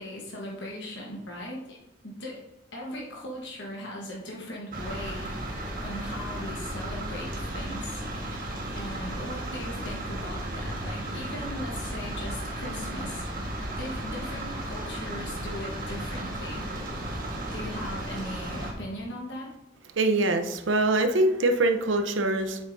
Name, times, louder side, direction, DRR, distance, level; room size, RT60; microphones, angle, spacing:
voice 1, 0.0-1.8 2.0-5.3 5.8-8.0 8.7-13.3 13.8-16.7 17.5-19.5, left 1 dB, 65° left, -2 dB, 1.3 m, -39 dB
sound 1, 4.7-18.7, right 1 dB, 50° right, 1.5 m, -34 dB
voice 2, 19.9-22.6, right 2 dB, 80° right, 6 dB, 0.8 m, -24 dB
8.2 x 6.4 x 2.7 m, 0.97 s
head